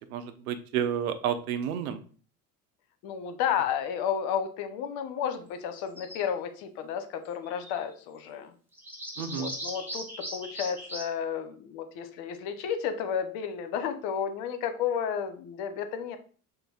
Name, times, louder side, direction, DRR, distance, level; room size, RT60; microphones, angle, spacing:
voice 1, 0.0-2.0 9.2-9.5, right 9 dB, 65° right, 10 dB, 0.7 m, -31 dB
voice 2, 3.0-8.5 9.3-16.2, left 8 dB, 50° left, 9 dB, 0.8 m, -32 dB
sound 1, 5.8-6.2 7.3-7.8 8.7-11.0, equal, 5° right, 1.3 m, -39 dB
5.3 x 2.0 x 4.2 m, 0.41 s
figure-of-eight pair, 65°, 47 cm